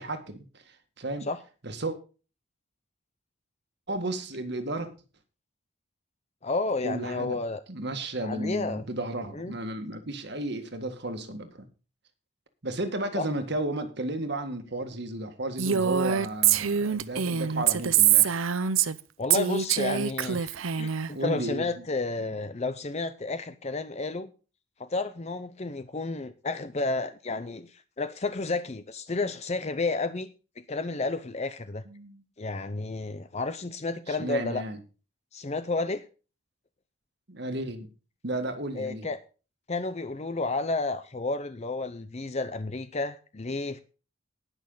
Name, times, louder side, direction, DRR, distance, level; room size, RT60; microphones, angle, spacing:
voice 1, 0.0-1.3 1.6-2.0 3.9-4.9 6.8-7.4 7.7-11.7 12.6-18.4 21.1-21.7 31.9-32.2 34.1-34.8 37.3-37.9 38.2-39.1, right 1 dB, 55° right, 1.7 m, -33 dB
voice 2, 6.4-7.6 8.2-8.8 9.3-9.6 13.2-13.3 19.2-24.3 24.8-30.3 30.6-31.8 32.4-34.7 35.3-36.0 38.8-39.2 39.7-43.8, left 3 dB, 30° left, 0.6 m, -31 dB
Female speech woman speaking, 15.6-19.0 19.3-21.1, right 9 dB, 75° right, 0.7 m, -24 dB
19.0 x 6.5 x 3.9 m
head